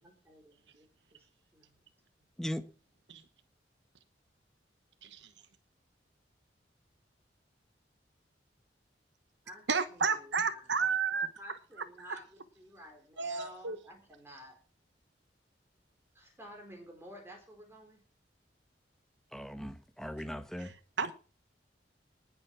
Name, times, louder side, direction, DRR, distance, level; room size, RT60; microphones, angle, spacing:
voice 1, 0.2-0.9 1.5-1.8 9.4-9.6 9.9-10.8 11.4-14.6 16.1-18.0, equal, 15° right, 4.5 m, -52 dB
voice 2, 9.7-11.3 13.2-13.8 20.6-21.1, right 5 dB, 80° right, 1.1 m, -32 dB
voice 3, 19.3-20.7, equal, 5° left, 1.1 m, -38 dB
19.5 x 7.1 x 6.0 m
head